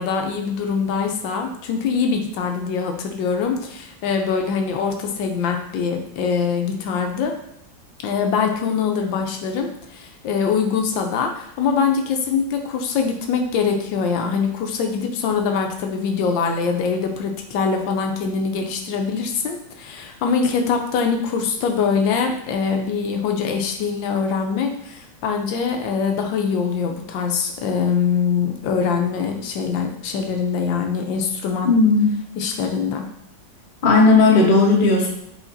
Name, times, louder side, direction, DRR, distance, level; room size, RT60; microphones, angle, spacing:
voice 1, 0.0-7.3 8.0-31.9 32.4-33.0, left 6 dB, 85° left, 3 dB, 1.3 m, -23 dB
voice 2, 31.6-32.1 33.8-35.1, left 3 dB, 35° left, -3 dB, 0.9 m, -14 dB
4.9 x 3.8 x 2.6 m, 0.77 s
omnidirectional pair, 2.0 m